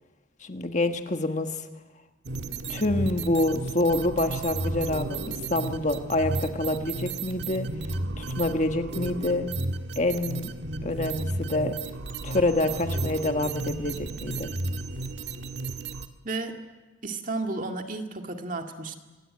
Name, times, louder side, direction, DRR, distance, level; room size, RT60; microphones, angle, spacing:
voice 1, 0.4-1.6 2.7-7.7 8.2-9.5 10.0-10.5 10.8-11.7 12.2-14.5, left 2 dB, 35° left, 6 dB, 1.4 m, -27 dB
sound 1, 2.2-16.1, right 2 dB, 55° right, 1.5 m, -33 dB
voice 2, 16.2-16.6 17.0-19.0, right 3 dB, 40° right, 4 dB, 2.1 m, -32 dB
26.5 x 22.0 x 8.7 m, 1.2 s
head